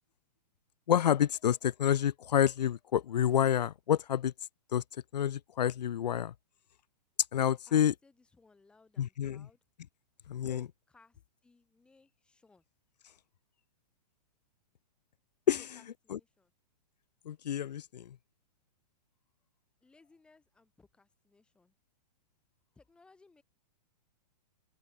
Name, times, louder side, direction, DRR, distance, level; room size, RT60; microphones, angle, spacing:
voice 1, 0.9-4.3 4.7-4.8 5.1-6.3 7.3-7.9 9.0-9.3 10.3-10.6 15.5-15.6 16.1-16.2 17.3-18.2, left 10 dB, 85° left, 1.0 m, -28 dB
voice 2, 7.7-9.6 10.4-12.7 15.6-16.5 19.8-21.8 22.7-23.4, left 3 dB, 5° left, 5.5 m, -62 dB
open air
hypercardioid pair, 180°, 21 cm